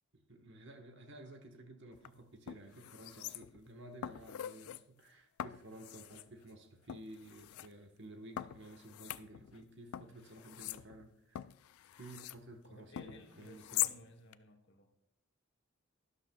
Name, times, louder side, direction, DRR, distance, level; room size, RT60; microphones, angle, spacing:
voice 1, 0.3-11.4 12.0-13.9, right 1 dB, 50° right, 6 dB, 1.2 m, -53 dB
sound 1, 1.9-2.1 2.5-3.7 4.0-4.8 5.4-6.3 6.9-7.7 8.4-9.6 9.9-12.4 13.0-14.0 14.3-14.4, left 13 dB, 75° left, 0.3 m, -42 dB
voice 2, 12.6-14.9, left 2 dB, 50° left, 4 dB, 1.1 m, -57 dB
12.5 x 11.0 x 2.3 m, 0.75 s
head